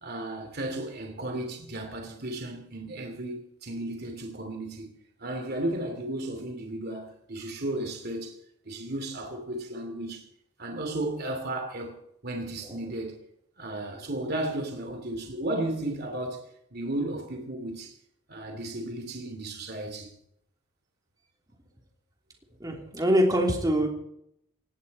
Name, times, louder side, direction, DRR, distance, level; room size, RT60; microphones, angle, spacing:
voice 1, 0.0-4.9 5.2-8.4 8.6-10.2 10.6-13.2 13.6-16.4 16.7-17.9 18.3-20.1, right 1 dB, 50° right, 3.0 m, -34 dB
voice 2, 22.6-23.9, equal, 20° right, 3.2 m, -24 dB
18.5 x 17.0 x 4.3 m
head